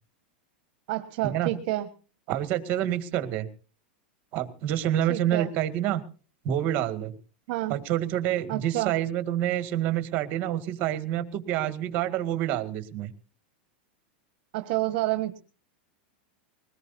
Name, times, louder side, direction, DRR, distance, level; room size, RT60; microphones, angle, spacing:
voice 1, 0.9-1.9 5.1-5.5 7.5-7.8 8.5-8.9 14.5-15.4, right 17 dB, 55° right, 9 dB, 1.3 m, -29 dB
voice 2, 2.3-3.5 4.3-6.0 6.4-7.1 7.7-13.1, right 11 dB, 35° right, 10 dB, 1.9 m, -27 dB
22.0 x 19.0 x 2.7 m, 0.38 s
supercardioid pair, 160°, 5 cm